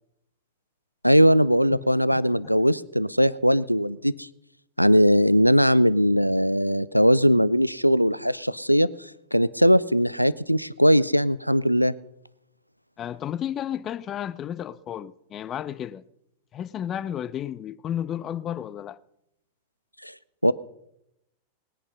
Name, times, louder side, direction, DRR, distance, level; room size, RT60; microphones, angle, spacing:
voice 1, 1.0-4.3 4.8-12.0 20.0-20.1 20.4-20.5, equal, 90° left, 0.4 m, -20 dB
voice 2, 13.0-16.0 16.5-19.0, left 10 dB, 30° left, 0.6 m, -32 dB
19.5 x 10.0 x 5.6 m
figure-of-eight pair, 90°, 0 cm